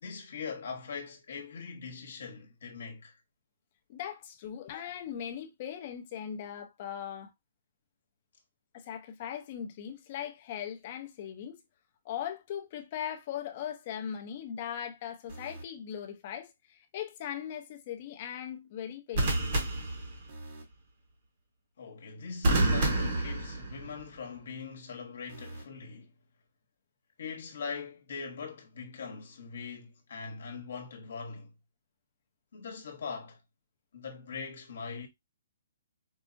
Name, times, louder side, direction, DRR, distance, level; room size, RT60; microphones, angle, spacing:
voice 1, 0.0-3.2 21.8-26.1 27.2-31.5 32.5-33.4 33.9-35.1, left 5 dB, 65° left, 1.0 m, -41 dB
voice 2, 3.9-7.3 8.7-11.6 12.0-19.5, left 9 dB, 30° left, 0.6 m, -39 dB
sound 1, 15.3-15.6 19.1-20.6 22.4-24.1 25.3-25.6, right 2 dB, 40° right, 1.2 m, -29 dB
4.6 x 2.0 x 2.5 m
hypercardioid pair, 170°, 0 cm